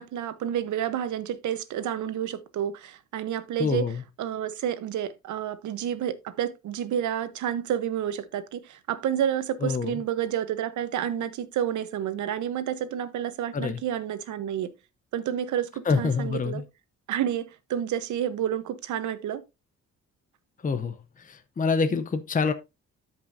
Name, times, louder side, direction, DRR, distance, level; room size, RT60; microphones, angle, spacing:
voice 1, 0.0-14.7 15.1-16.6 17.1-19.4 21.9-22.0, right 10 dB, 75° right, 1.1 m, -30 dB
voice 2, 3.6-4.0 9.6-9.9 13.5-13.8 15.9-16.5 20.6-21.0 21.2-22.5, left 5 dB, 25° left, 0.8 m, -26 dB
12.5 x 5.4 x 2.7 m
cardioid pair, 90°, 30 cm